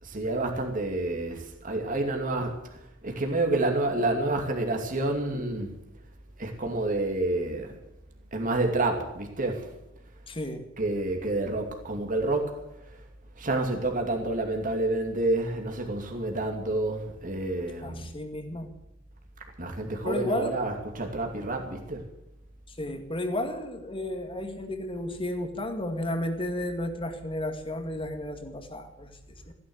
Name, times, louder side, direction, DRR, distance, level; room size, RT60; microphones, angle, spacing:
voice 1, 0.0-2.6 3.0-5.7 6.4-7.8 8.3-9.7 10.8-12.6 13.4-18.2 19.6-22.0, right 2 dB, 45° right, 2.7 m, -29 dB
voice 2, 10.3-10.7 17.8-18.7 20.0-20.7 22.7-29.5, left 1 dB, 25° left, 2.1 m, -33 dB
15.5 x 11.0 x 8.0 m
head